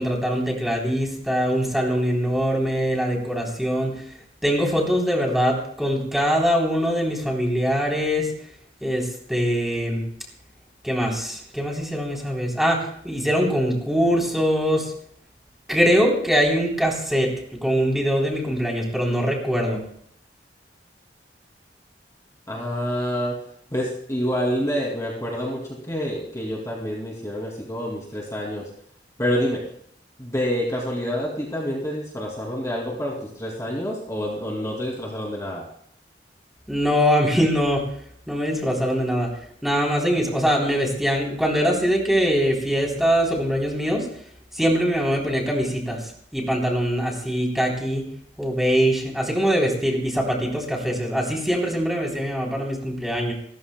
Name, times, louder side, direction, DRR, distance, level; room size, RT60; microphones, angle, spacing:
voice 1, 0.0-4.0 4.4-8.3 8.8-10.0 10.8-14.9 15.7-19.8 36.7-37.9 38.3-39.3 39.6-44.1 44.5-46.0 46.3-48.1 48.4-53.3, equal, ahead, -1 dB, 3.3 m, -22 dB
voice 2, 22.5-23.4 23.7-28.7 29.2-29.7 30.2-35.6, equal, 20° left, -2 dB, 2.5 m, -27 dB
29.0 x 14.5 x 2.2 m, 0.64 s
head